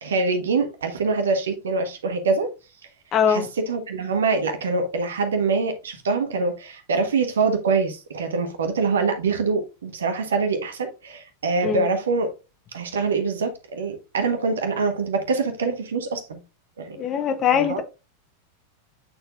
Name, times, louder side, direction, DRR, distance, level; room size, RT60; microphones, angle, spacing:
voice 1, 0.0-2.5 3.3-12.3 12.7-16.4 16.8-17.0 17.5-17.8, right 4 dB, 65° right, 1.3 m, -24 dB
voice 2, 3.1-3.5 11.6-11.9 17.0-17.8, left 8 dB, 30° left, 0.9 m, -21 dB
8.5 x 4.5 x 2.5 m
figure-of-eight pair, 90°, 0 cm